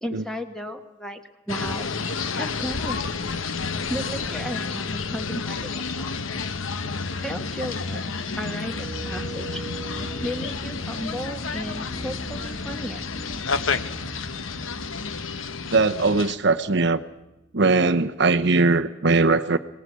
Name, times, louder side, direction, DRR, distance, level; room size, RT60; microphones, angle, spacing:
voice 1, 0.0-1.2 1.5-1.9 2.3-3.0 3.8-6.1 7.2-9.6 10.2-13.1, equal, 5° left, 5 dB, 1.4 m, -34 dB
sound 1, 1.5-16.4, left 4 dB, 70° left, 1.0 m, -30 dB
sound 2, 8.7-17.4, right 1 dB, 30° left, 4.5 m, -39 dB
voice 2, 15.7-17.0 17.5-19.6, right 3 dB, 55° right, 8 dB, 0.8 m, -20 dB
24.0 x 18.5 x 8.2 m, 0.96 s
head